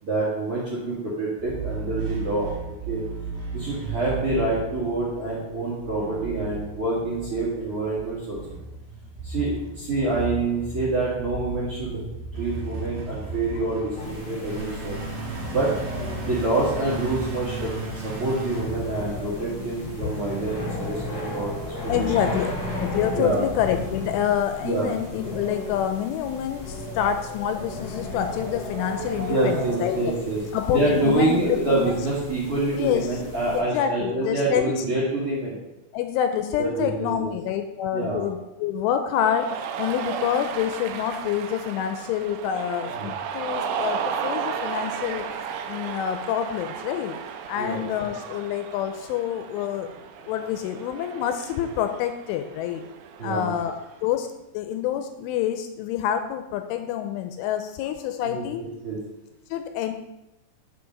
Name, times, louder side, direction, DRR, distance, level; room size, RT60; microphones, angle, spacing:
voice 1, 0.0-2.5 2.9-3.0 3.5-8.4 9.2-15.0 15.5-15.7 16.2-21.5 21.8-21.9 23.1-23.4 24.6-24.9 29.3-30.4 30.7-35.6 36.6-37.3 37.9-38.2 42.9-43.1 47.6-47.9 53.2-53.5 58.2-59.0, right 2 dB, 40° right, -7 dB, 2.3 m, -26 dB
sound 1, 1.4-19.6, right 3 dB, 60° right, 3.0 m, -35 dB
voice 2, 13.7-14.1 14.6-14.7 20.0-20.1 21.9-22.5 22.8-30.0 30.5-32.0 32.7-33.2 33.5-34.8 35.9-45.3 45.7-47.2 47.5-49.9 50.2-52.8 53.2-53.8 54.0-54.3 54.5-58.7 59.5-59.9, left 10 dB, 85° left, 7 dB, 3.0 m, -27 dB
sound 2, 14.0-33.6, left 1 dB, 35° left, 1.7 m, -35 dB
Cheering, 39.1-54.0, right 7 dB, 80° right, 2.6 m, -34 dB
7.1 x 7.0 x 5.2 m, 0.92 s
omnidirectional pair, 5.7 m